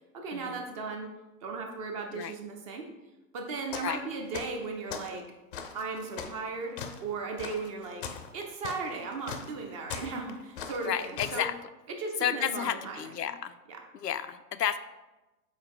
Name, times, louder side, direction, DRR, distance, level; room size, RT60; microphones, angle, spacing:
voice 1, 0.1-1.1 1.4-2.9 3.3-5.3 5.7-11.5 11.9-13.2 13.7-13.8, right 4 dB, 20° right, 3 dB, 0.5 m, -36 dB
sound 1, 3.7-4.0 4.3-5.1 5.5-11.4, left 6 dB, 35° left, 0.5 m, -40 dB
voice 2, 10.8-11.5 12.2-13.5 14.0-14.8, left 9 dB, 80° left, 11 dB, 0.5 m, -31 dB
5.7 x 4.1 x 4.4 m, 1.1 s
figure-of-eight pair, 105°, 48 cm